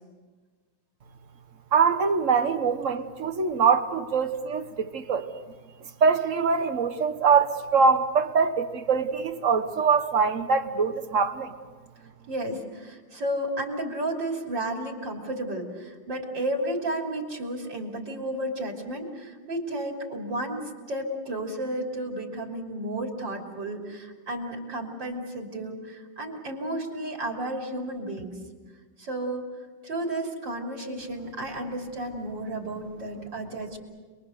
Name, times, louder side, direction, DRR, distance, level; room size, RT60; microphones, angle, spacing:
voice 1, 1.7-5.3 6.0-11.5, right 5 dB, 40° right, 9 dB, 1.4 m, -23 dB
voice 2, 12.3-28.4 29.0-29.4 29.8-33.8, right 1 dB, 60° right, 1 dB, 3.8 m, -32 dB
28.5 x 22.0 x 6.7 m, 1.4 s
omnidirectional pair, 2.3 m